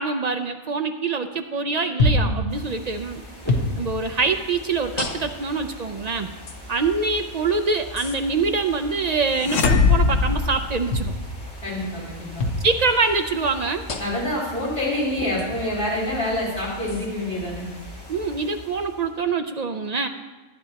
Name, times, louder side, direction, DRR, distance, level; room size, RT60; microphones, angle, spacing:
voice 1, 0.0-3.2 3.8-6.3 6.7-11.1 12.6-13.8 18.1-20.1, right 4 dB, 60° right, 6 dB, 0.4 m, -24 dB
voice 2, 1.9-2.5 11.6-12.5 14.0-17.7, left 1 dB, 40° left, -8 dB, 3.4 m, -27 dB
sound 1, 2.0-2.4 3.5-3.7 5.0-5.5 6.5-6.6 8.0-8.2 10.9-11.2 12.4-12.6 13.9-14.3 15.4-15.5 16.9-17.1, left 2 dB, 60° left, 1.2 m, -24 dB
sound 2, 2.5-19.3, equal, 20° left, 2.4 m, -40 dB
sound 3, 9.4-11.4, left 4 dB, 90° left, 1.1 m, -20 dB
15.0 x 10.0 x 2.9 m, 1.2 s
omnidirectional pair, 1.3 m